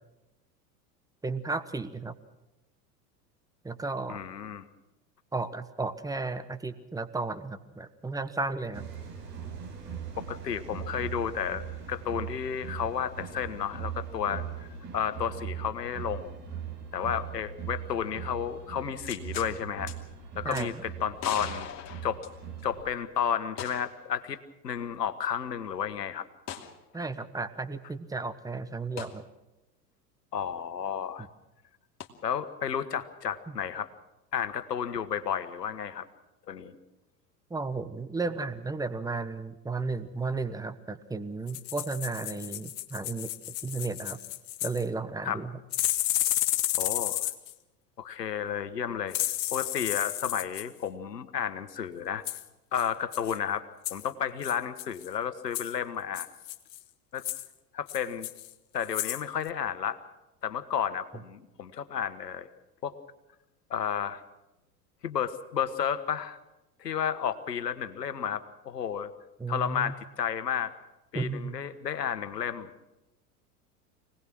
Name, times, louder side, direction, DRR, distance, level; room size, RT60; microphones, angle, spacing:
voice 1, 1.2-2.1 3.6-4.2 5.3-8.9 20.4-20.8 26.9-29.2 37.5-43.3 43.6-44.2 44.6-45.5 69.4-69.9 71.1-71.5, right 3 dB, 5° right, 12 dB, 1.2 m, -34 dB
voice 2, 4.1-4.6 10.2-16.4 16.9-19.9 20.3-21.7 22.0-22.2 22.6-24.4 24.6-26.3 30.3-31.3 32.2-33.9 34.3-36.1 36.5-36.8 45.2-45.4 46.8-47.3 48.0-49.2 49.5-52.2 52.7-53.6 53.9-56.3 57.1-57.2 57.7-58.3 58.7-60.0 60.4-62.5 62.8-63.0 63.7-64.2 65.0-66.4 66.8-69.1 69.5-70.7 71.1-72.7, left 8 dB, 80° left, 12 dB, 1.5 m, -32 dB
sound 1, 8.7-22.9, right 8 dB, 75° right, 5.7 m, -40 dB
sound 2, 19.0-19.5 19.9-20.0 20.5-20.7 21.2-22.7 23.6-24.0 24.3-24.4 26.5-26.7 29.0-29.2 32.0-32.1, left 10 dB, 35° left, 2.6 m, -39 dB
sound 3, 41.5-44.8 45.7-47.5 49.1-50.7 52.3-52.4 52.8-52.9 53.1-53.4 53.8-54.1 54.4-55.1 55.5-55.7 56.2-56.8 57.2-57.5 57.9-58.5 58.8-59.2 59.5-59.6, left 15 dB, 55° left, 1.5 m, -32 dB
24.5 x 18.5 x 6.2 m, 0.97 s
figure-of-eight pair, 85°, 48 cm